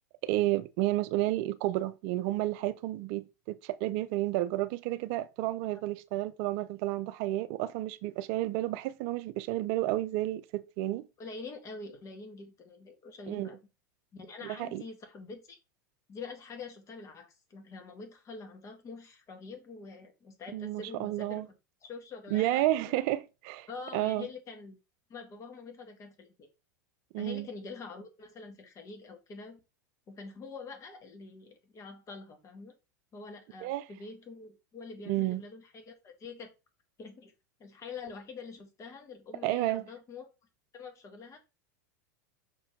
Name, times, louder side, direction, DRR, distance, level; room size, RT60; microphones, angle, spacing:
voice 1, 0.2-11.0 13.3-13.5 14.4-14.8 20.5-21.5 22.3-24.3 27.1-27.5 33.6-33.8 35.1-35.4 39.4-39.9, right 16 dB, 55° right, 0.5 m, -31 dB
voice 2, 11.2-13.6 14.1-15.6 16.1-21.5 21.8-23.0 23.7-24.8 25.1-26.5 27.2-29.6 30.1-32.7 33.1-36.5 37.0-37.3 37.6-40.3 40.7-41.4, left 4 dB, 35° left, 2.1 m, -45 dB
6.0 x 4.4 x 3.6 m
hypercardioid pair, 100°, 10 cm